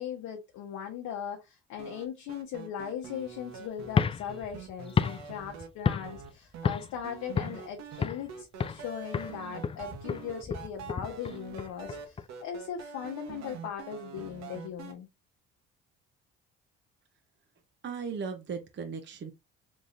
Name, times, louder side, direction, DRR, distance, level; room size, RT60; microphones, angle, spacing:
voice 1, 0.0-15.1, left 9 dB, 65° left, 0.9 m, -39 dB
sound 1, 1.8-5.7 6.0-6.7 7.0-14.9, right 7 dB, 60° right, 1.0 m, -45 dB
sound 2, 3.9-6.3 6.6-7.0 7.4-8.3 8.6-8.9 9.1-12.3, left 6 dB, 20° left, 0.3 m, -31 dB
voice 2, 17.8-19.3, right 5 dB, 35° right, 0.8 m, -37 dB
3.6 x 3.0 x 2.6 m
supercardioid pair, 65°, 30 cm